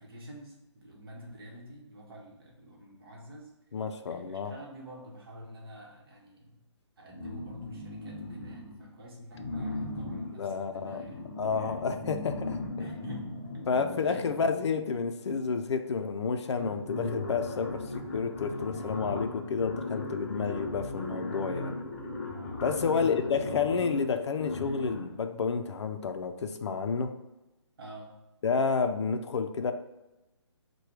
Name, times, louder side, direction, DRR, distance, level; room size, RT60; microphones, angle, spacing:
voice 1, 0.0-3.5 4.1-6.6 7.0-11.2 11.5-11.8 12.8-13.3 14.1-14.2 22.8-23.5 27.8-28.1, equal, 50° right, -2 dB, 1.2 m, -48 dB
voice 2, 3.7-4.5 10.3-11.0 11.4-12.9 13.7-21.7 22.6-27.1 28.4-29.7, left 5 dB, 65° left, 7 dB, 0.5 m, -30 dB
sound 1, 7.1-8.9 9.3-15.0 15.9-16.0 16.3-25.2, left 2 dB, 25° left, 0.6 m, -37 dB
4.7 x 2.2 x 4.6 m, 1.0 s
hypercardioid pair, 155°, 15 cm